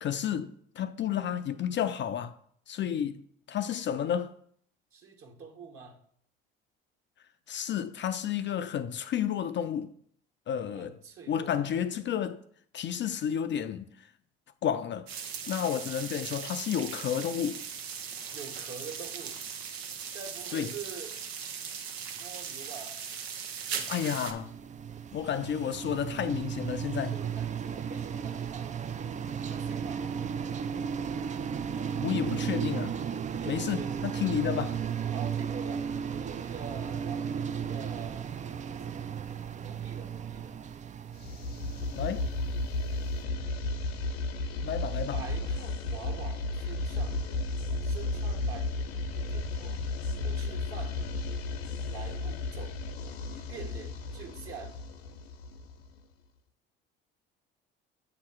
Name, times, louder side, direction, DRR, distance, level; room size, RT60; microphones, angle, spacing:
voice 1, 0.0-2.3 2.7-3.2 3.5-4.3 7.5-9.9 10.5-11.0 11.3-12.4 12.7-13.9 14.6-15.1 15.5-17.6 20.5-20.8 23.7-24.5 25.1-27.2 32.0-33.0 33.5-34.8 42.0-42.3 44.6-45.3 51.0-51.1, left 9 dB, 40° left, 0.4 m, -31 dB
voice 2, 4.9-6.0 10.7-11.7 18.3-19.4 20.1-21.2 22.2-23.0 27.1-28.9 29.5-30.4 33.3-34.1 35.1-35.9 36.2-38.3 39.5-40.6 45.1-47.5 47.8-49.8 50.2-51.0 51.9-52.8 53.3-54.8, right 5 dB, 45° right, 1.5 m, -45 dB
sound 1, 15.1-24.3, right 7 dB, 85° right, 0.8 m, -39 dB
sound 2, 23.8-42.8, right 7 dB, 25° right, 0.4 m, -35 dB
sound 3, 41.2-56.0, left 2 dB, 85° left, 0.7 m, -33 dB
7.7 x 2.9 x 6.0 m
hypercardioid pair, 60°, 30 cm